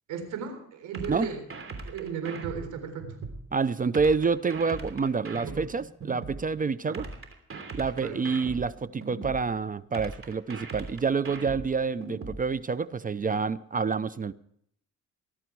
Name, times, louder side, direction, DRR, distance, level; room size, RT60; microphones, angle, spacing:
voice 1, 0.1-1.4 1.8-3.2 5.4-5.7 6.9-7.1 8.0-8.2, right 6 dB, 80° right, 7 dB, 3.8 m, -36 dB
sound 1, 0.9-3.4 3.9-6.4 6.9-9.4 9.9-12.4, right 3 dB, 45° right, 3.2 m, -39 dB
voice 2, 3.5-7.1 7.7-14.3, right 5 dB, 30° right, 17 dB, 0.6 m, -28 dB
20.5 x 11.5 x 4.7 m, 0.69 s
cardioid pair, 90°, 30 cm